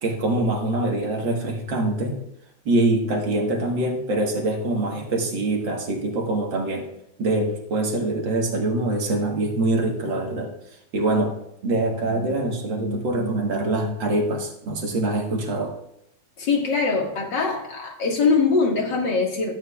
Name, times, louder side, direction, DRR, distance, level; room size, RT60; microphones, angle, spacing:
voice 1, 0.0-2.2 2.7-6.9 7.2-10.5 10.9-11.3 11.6-15.7, right 2 dB, 65° right, 1 dB, 2.1 m, -24 dB
voice 2, 16.4-19.5, left 4 dB, 60° left, 0 dB, 2.5 m, -22 dB
14.5 x 9.0 x 2.4 m, 0.80 s
omnidirectional pair, 2.2 m